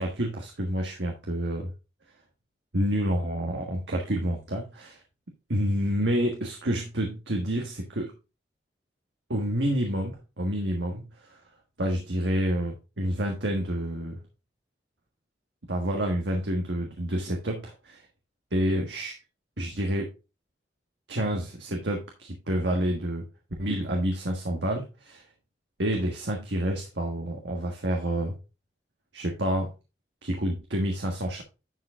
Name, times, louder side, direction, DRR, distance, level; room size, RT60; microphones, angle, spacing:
voice 1, 0.0-1.7 2.7-5.0 5.5-8.1 9.3-11.4 11.8-14.2 15.7-18.0 18.5-19.1 19.6-20.1 21.1-23.2 23.6-25.2 25.8-28.4 29.1-29.7 30.2-31.4, equal, 90° right, 1 dB, 1.5 m, -28 dB
11.0 x 4.8 x 3.6 m, 0.29 s
head